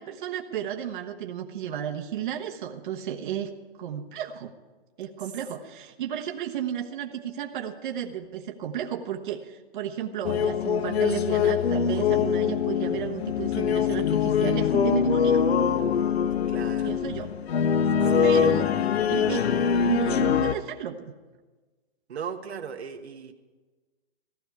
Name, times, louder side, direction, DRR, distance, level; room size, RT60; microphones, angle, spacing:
voice 1, 0.0-3.5 3.8-4.5 5.0-15.5 16.8-17.3 18.2-18.7 19.1-19.4 19.8-21.1, right 9 dB, 50° right, 3 dB, 1.2 m, -33 dB
sound 1, 10.2-20.5, left 7 dB, 80° left, 0.9 m, -23 dB
voice 2, 16.4-17.0 18.0-18.6 22.1-23.3, right 7 dB, 90° right, 4 dB, 1.4 m, -35 dB
15.5 x 13.5 x 4.7 m, 1.3 s
hypercardioid pair, 150°, 31 cm